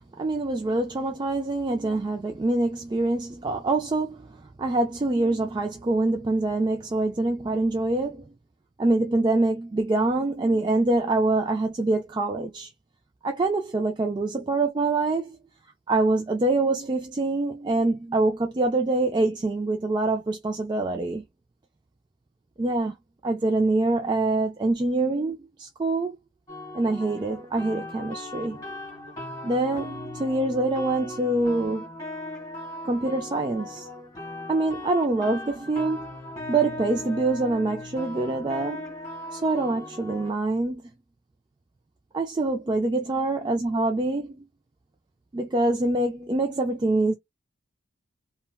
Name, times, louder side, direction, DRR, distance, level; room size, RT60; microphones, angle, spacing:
voice 1, 0.2-8.2 8.8-12.7 13.2-15.4 15.9-21.2 22.6-22.9 23.2-26.1 26.7-28.6 29.4-31.9 32.8-33.9 34.5-36.1 36.5-38.9 39.3-40.8 42.1-44.4 45.3-47.1, right 2 dB, 20° right, 0.3 m, -25 dB
sound 1, 26.5-40.3, left 1 dB, 20° left, 1.8 m, -38 dB
3.4 x 2.1 x 2.3 m
head